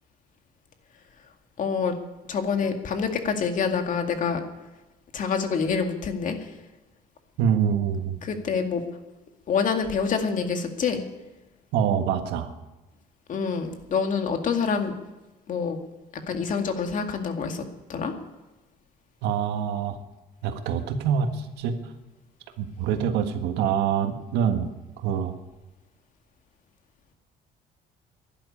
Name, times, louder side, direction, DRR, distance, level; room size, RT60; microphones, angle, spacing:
voice 1, 1.6-2.0 2.3-4.4 5.1-6.4 8.2-8.8 9.5-11.0 13.3-14.9 15.5-15.8 16.3-17.6 17.9-18.1, left 6 dB, 50° left, 5 dB, 2.2 m, -26 dB
voice 2, 7.4-8.2 11.7-12.5 19.2-20.0 20.4-21.8 22.6-24.7 25.0-25.3, right 8 dB, 90° right, 7 dB, 1.6 m, -25 dB
12.0 x 11.0 x 9.9 m, 1.1 s
cardioid pair, 110°, 17 cm